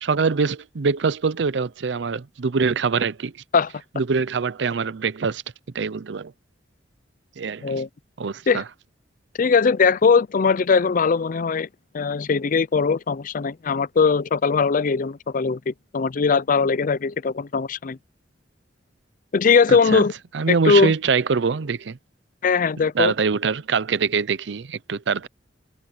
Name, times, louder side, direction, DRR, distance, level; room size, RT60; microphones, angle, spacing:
voice 1, 0.0-3.3 3.9-5.4 5.7-6.3 7.4-7.8 8.2-8.6 19.7-20.0 20.3-22.0 23.0-25.3, right 5 dB, 70° right, 0.6 m, -24 dB
voice 2, 9.4-11.7 11.9-18.0 19.3-20.1 20.5-20.9 22.4-23.1, left 5 dB, 45° left, 0.5 m, -20 dB
head